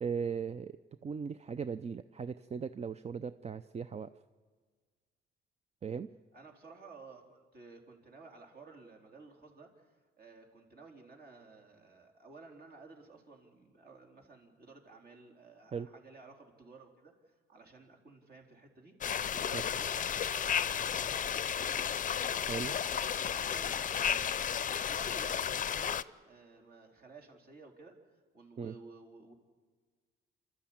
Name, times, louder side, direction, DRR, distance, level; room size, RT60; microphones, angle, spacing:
voice 1, 0.0-0.8 1.0-4.1 5.8-6.1 15.7-15.9 19.5-19.6 22.5-22.8 28.6-28.7, right 6 dB, 35° right, 12 dB, 0.5 m, -38 dB
voice 2, 6.3-21.9 22.2-29.3, right 3 dB, 50° right, 1 dB, 4.0 m, -55 dB
sound 1, 19.0-26.0, left 8 dB, 40° left, 0.6 m, -33 dB
28.0 x 13.0 x 8.7 m, 1.5 s
cardioid pair, 90°, 20 cm